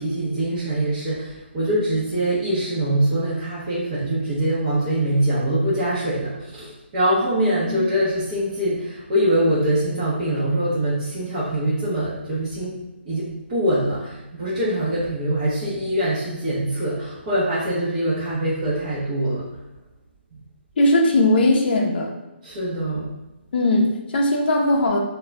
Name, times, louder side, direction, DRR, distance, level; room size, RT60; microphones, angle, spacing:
voice 1, 0.0-12.8 13.1-19.5 22.4-23.1, right 1 dB, 30° right, -9 dB, 0.7 m, -23 dB
voice 2, 20.8-22.1 23.5-25.0, left 1 dB, 50° left, 1 dB, 0.5 m, -19 dB
2.4 x 2.1 x 3.1 m, 1.0 s
hypercardioid pair, 160°, 7 cm